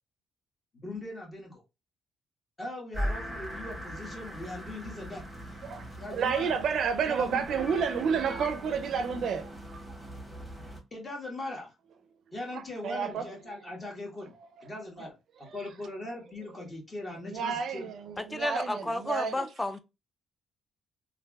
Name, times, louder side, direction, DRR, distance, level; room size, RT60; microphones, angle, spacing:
voice 1, 0.8-1.6 2.6-5.6 6.0-6.5 7.0-7.4 10.6-11.7 12.3-14.3 14.6-17.9, left 2 dB, 30° left, 1.3 m, -40 dB
sound 1, 2.9-10.8, equal, ahead, 1.2 m, -40 dB
voice 2, 5.6-9.8 12.5-13.3 13.7-13.8 15.4-15.6 17.3-19.5, right 6 dB, 65° right, 0.4 m, -31 dB
voice 3, 18.2-19.8, left 1 dB, 15° left, 0.3 m, -32 dB
3.2 x 2.4 x 2.2 m
cardioid pair, 90°, 0 cm